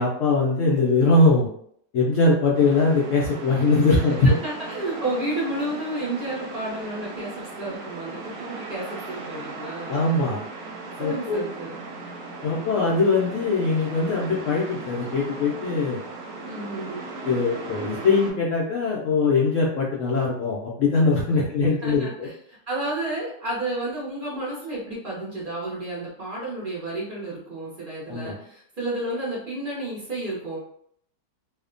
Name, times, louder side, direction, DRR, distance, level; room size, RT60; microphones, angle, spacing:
voice 1, 0.0-1.5 1.9-4.3 9.9-10.4 11.0-11.4 12.4-16.0 17.2-22.3 28.1-28.3, left 3 dB, 70° left, -4 dB, 0.7 m, -21 dB
sound 1, 2.5-18.3, right 3 dB, 75° right, 1.1 m, -37 dB
voice 2, 4.4-10.1 11.0-11.8 16.4-17.1 21.3-21.5 21.8-30.6, right 1 dB, 45° right, -6 dB, 0.7 m, -31 dB
2.8 x 2.1 x 2.4 m, 0.65 s
omnidirectional pair, 1.8 m